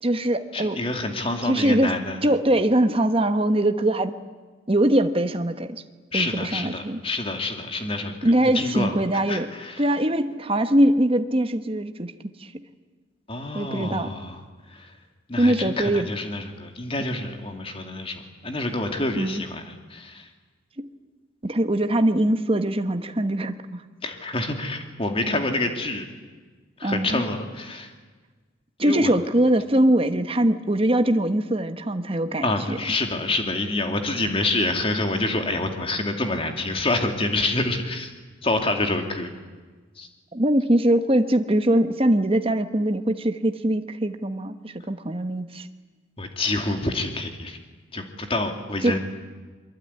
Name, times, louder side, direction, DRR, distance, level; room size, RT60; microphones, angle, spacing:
voice 1, 0.0-0.8 1.4-1.9 2.2-4.1 4.7-5.8 6.1-7.0 8.2-9.5 9.8-12.1 12.4-12.5 13.5-14.1 15.4-16.1 19.2-19.4 20.8-20.9 21.4-23.8 26.8-27.2 28.8-32.8 40.3-45.7 48.8-49.0, right 1 dB, 25° right, 8 dB, 1.2 m, -22 dB
voice 2, 0.5-2.2 6.1-8.9 9.3-9.8 13.3-14.4 14.7-14.9 15.3-20.3 24.0-26.1 26.8-27.9 28.8-29.1 32.4-38.1 38.4-39.3 40.0-40.1 46.2-47.6 47.9-49.0, left 2 dB, 25° left, 4 dB, 2.6 m, -27 dB
23.5 x 23.0 x 9.7 m, 1.4 s
head